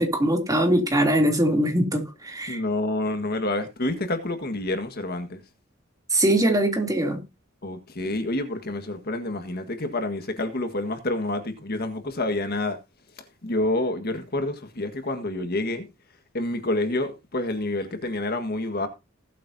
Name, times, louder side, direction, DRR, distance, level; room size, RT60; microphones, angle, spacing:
voice 1, 0.0-2.6 6.1-7.2, right 1 dB, 20° right, 3.1 m, -22 dB
voice 2, 2.5-5.4 7.6-12.8 13.4-15.9 16.3-18.9, left 2 dB, 50° left, 1.7 m, -28 dB
19.5 x 8.5 x 2.8 m
head